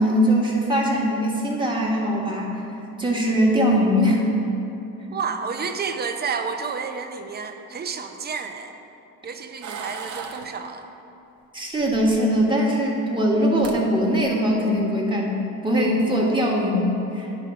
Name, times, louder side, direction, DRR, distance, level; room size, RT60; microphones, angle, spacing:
voice 1, 0.0-2.6 3.0-4.2 11.5-17.3, equal, 15° right, -3 dB, 1.4 m, -21 dB
voice 2, 5.1-8.8 9.2-10.9, right 5 dB, 30° right, 6 dB, 0.6 m, -30 dB
sound 1, 9.6-10.5 11.8-12.5 13.3-13.4 13.6-13.8 14.2-14.5, right 6 dB, 60° right, 0.8 m, -36 dB
10.5 x 3.6 x 5.7 m, 2.9 s
cardioid pair, 110°, 33 cm